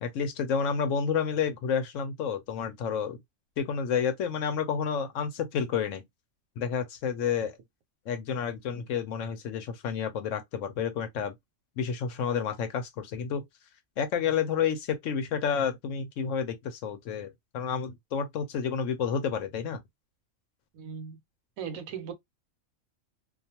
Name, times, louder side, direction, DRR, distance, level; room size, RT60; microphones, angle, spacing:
voice 1, 0.0-3.2 3.6-6.0 6.6-7.6 8.1-11.3 11.8-13.4 14.0-19.8, left 7 dB, 70° left, 0.9 m, -30 dB
voice 2, 20.7-21.2 21.6-22.1, right 7 dB, 80° right, 1.0 m, -38 dB
2.4 x 2.3 x 2.7 m
omnidirectional pair, 1.5 m